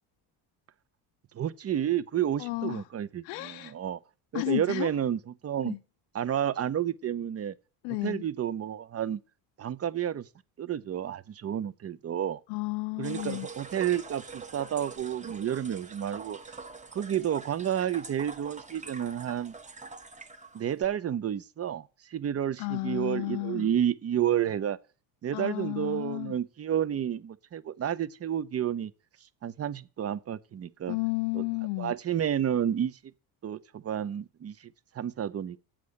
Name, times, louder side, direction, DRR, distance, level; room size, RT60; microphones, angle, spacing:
voice 1, 1.3-4.0 4.3-5.8 6.1-7.5 8.0-9.2 9.6-10.3 10.6-12.4 13.0-16.4 16.9-19.5 20.5-24.8 25.2-28.9 29.2-31.0 31.3-31.4 31.8-33.0 33.4-35.6, right 10 dB, 35° right, 0.8 m, -30 dB
voice 2, 2.4-2.8 3.2-3.7 4.3-4.9 5.6-5.8 7.8-8.2 12.5-13.5 22.6-23.7 25.3-26.4 30.9-31.9, left 25 dB, 85° left, 0.6 m, -32 dB
sound 1, 13.0-20.8, right 4 dB, 15° right, 1.1 m, -45 dB
8.5 x 7.6 x 6.5 m
supercardioid pair, 100°, 44 cm